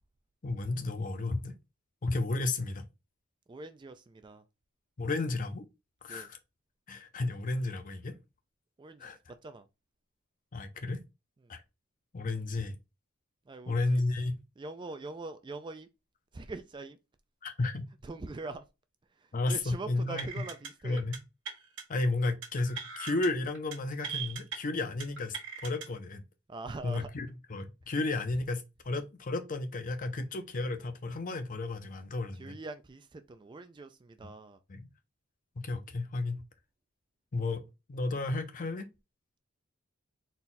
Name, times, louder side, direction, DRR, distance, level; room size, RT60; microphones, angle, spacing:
voice 1, 0.4-1.5 2.0-2.8 5.0-5.6 6.0-6.4 6.9-8.2 9.0-9.2 10.5-11.0 11.5-11.6 12.1-12.7 13.7-14.4 17.4-17.8 19.3-20.3 20.8-21.2 21.9-25.4 25.6-26.2 26.8-32.5 34.7-34.9 35.6-36.4 37.3-37.6 37.9-38.9, left 2 dB, 40° left, 0.6 m, -33 dB
voice 2, 3.5-4.4 6.1-6.3 8.8-9.2 9.4-9.7 11.4-11.5 13.5-14.0 14.6-15.9 16.3-17.0 18.0-18.6 19.2-21.0 26.5-27.1 32.3-34.6, right 3 dB, 20° right, 0.3 m, -43 dB
sound 1, 20.2-20.7 21.0-21.2 21.5-21.8 22.4-23.3 23.5-23.8 24.0-24.6 25.0-25.9, right 6 dB, 60° right, 1.4 m, -39 dB
4.1 x 2.3 x 3.8 m
head